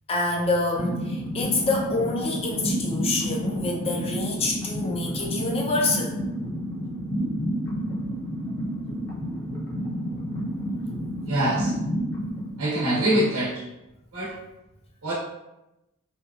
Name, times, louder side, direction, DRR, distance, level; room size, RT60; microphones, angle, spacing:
voice 1, 0.1-6.2, left 2 dB, 30° left, 0 dB, 0.4 m, -26 dB
sound 1, 0.8-13.4, equal, 60° left, 0.7 m, -30 dB
voice 2, 11.3-11.7 12.6-13.6 14.1-14.3 15.0-15.1, right 1 dB, 75° right, -7 dB, 0.7 m, -24 dB
2.7 x 2.3 x 2.4 m, 0.92 s
head